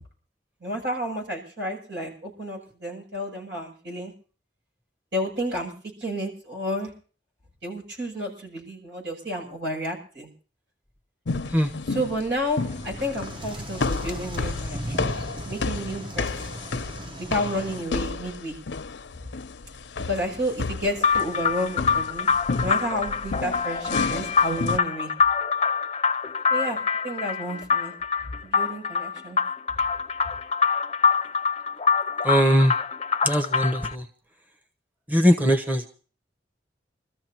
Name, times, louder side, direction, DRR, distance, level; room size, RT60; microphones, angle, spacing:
voice 1, 0.6-4.1 5.1-5.7 6.0-6.9 7.6-10.3 11.9-15.1 15.5-16.4 17.2-18.6 20.1-22.3 22.6-25.1 26.5-26.8 27.0-27.9 28.2-29.4, equal, 80° right, 2 dB, 8.0 m, -31 dB
sound 1, 11.3-24.8, left 4 dB, 90° left, 0.6 m, -32 dB
sound 2, 12.6-17.8, right 1 dB, 30° right, 0.9 m, -37 dB
sound 3, 21.0-33.9, left 6 dB, 35° left, 0.6 m, -25 dB
voice 2, 32.2-32.7 33.2-34.0 35.1-35.9, equal, 10° right, 2 dB, 1.1 m, -20 dB
27.5 x 14.0 x 3.0 m, 0.39 s
head